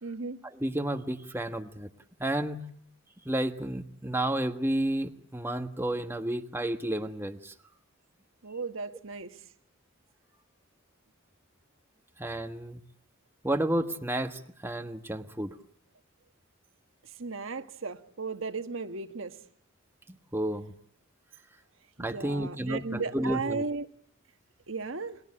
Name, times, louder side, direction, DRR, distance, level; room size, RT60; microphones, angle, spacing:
voice 1, 0.0-0.4 8.4-9.4 17.2-19.4 22.0-23.9 24.7-25.2, right 4 dB, 65° right, 9 dB, 1.4 m, -35 dB
voice 2, 0.5-1.9 2.2-2.6 3.2-7.5 12.2-12.8 13.4-15.5 20.1-20.7 22.0-23.6, right 1 dB, 10° right, 6 dB, 1.4 m, -31 dB
30.0 x 21.5 x 8.8 m, 0.64 s
head